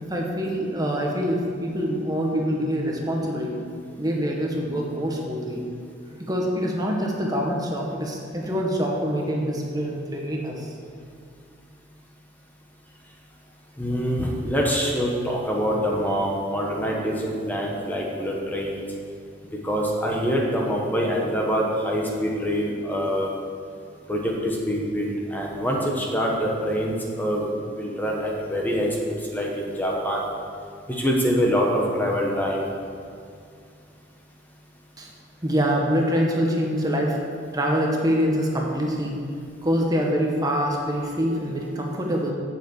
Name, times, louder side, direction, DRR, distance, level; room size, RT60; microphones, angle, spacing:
voice 1, 0.1-3.6 4.0-5.7 6.2-10.7 35.0-35.1 35.4-37.2 37.5-39.2 39.6-42.3, equal, 20° right, -1 dB, 1.2 m, -25 dB
voice 2, 13.8-18.8 19.6-23.3 24.1-27.5 27.7-28.9 29.3-30.3 30.9-32.7, equal, 10° left, -2 dB, 1.2 m, -25 dB
8.3 x 7.0 x 7.9 m, 2.4 s
head